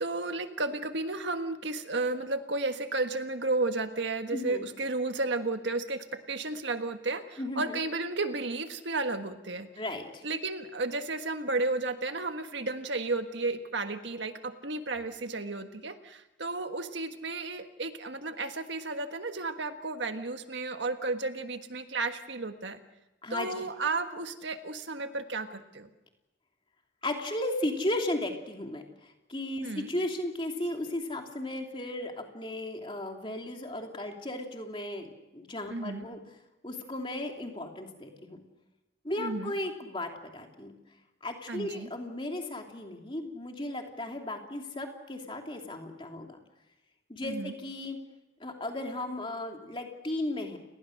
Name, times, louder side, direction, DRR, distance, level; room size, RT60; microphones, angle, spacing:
voice 1, 0.0-9.7 10.2-22.8 23.3-25.9 29.6-29.9 35.7-36.0 39.2-39.5 41.5-41.9 47.2-47.5, right 3 dB, 75° right, 7 dB, 1.5 m, -33 dB
voice 2, 4.3-4.7 7.4-7.8 9.8-10.2 23.2-23.5 27.0-36.2 36.6-38.4 39.0-40.7 41.2-46.4 47.1-48.0 48.4-50.6, left 1 dB, 25° left, 2 dB, 2.8 m, -35 dB
30.0 x 19.5 x 6.5 m, 0.99 s
head